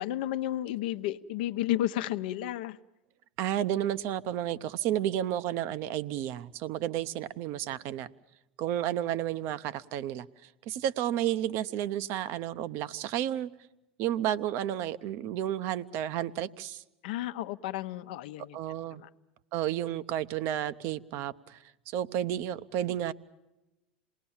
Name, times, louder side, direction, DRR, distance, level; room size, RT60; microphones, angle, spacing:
voice 1, 0.0-2.8 17.0-18.6 19.0-19.1, left 13 dB, 70° left, 10 dB, 0.8 m, -32 dB
voice 2, 3.4-8.1 8.6-13.5 14.0-16.8 18.5-19.0 19.5-23.1, right 11 dB, 55° right, 15 dB, 0.8 m, -32 dB
27.0 x 19.5 x 7.2 m, 0.97 s
hypercardioid pair, 90°, 5 cm